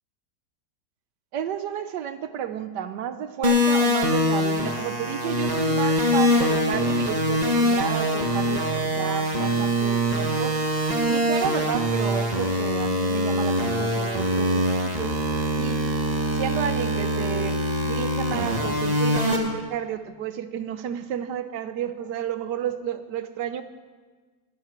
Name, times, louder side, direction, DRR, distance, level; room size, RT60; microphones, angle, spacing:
voice 1, 1.3-10.6 10.9-15.2 15.6-15.8 16.3-23.6, right 9 dB, 85° right, 11 dB, 1.4 m, -32 dB
sound 1, 3.4-19.4, equal, 25° right, 1.6 m, -23 dB
19.5 x 12.5 x 4.5 m, 1.4 s
omnidirectional pair, 1.8 m